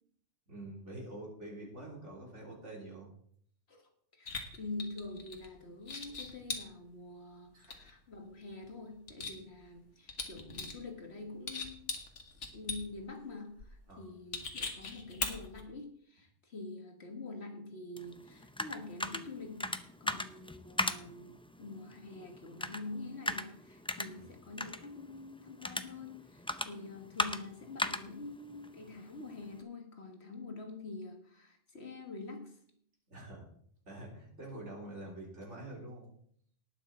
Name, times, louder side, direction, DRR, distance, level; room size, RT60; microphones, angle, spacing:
voice 1, 0.5-3.1 7.5-7.8 13.9-14.1 24.2-24.3 33.1-33.5 33.9-36.1, right 1 dB, 80° right, -2 dB, 4.0 m, -46 dB
voice 2, 3.7-11.9 12.5-32.6, left 3 dB, 65° left, 4 dB, 1.7 m, -46 dB
sound 1, 4.3-5.5 5.8-6.6 7.6-8.2 8.5-9.8 10.1-10.8 11.2-13.0 13.6-13.7 14.3-15.6, left 4 dB, 80° left, 1.9 m, -40 dB
sound 2, 18.0-29.6, left 1 dB, 10° left, 0.3 m, -40 dB
19.0 x 6.4 x 4.3 m, 0.65 s
omnidirectional pair, 1.2 m